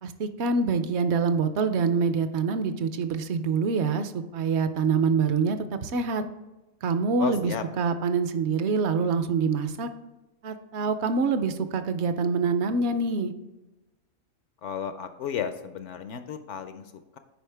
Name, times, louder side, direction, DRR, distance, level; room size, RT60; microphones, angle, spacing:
voice 1, 0.0-6.2 6.8-9.9 10.4-13.3, right 5 dB, 60° right, 10 dB, 0.8 m, -25 dB
voice 2, 7.2-7.6 14.6-17.2, left 8 dB, 65° left, 9 dB, 0.8 m, -34 dB
9.1 x 5.1 x 3.4 m, 1.0 s
omnidirectional pair, 1.5 m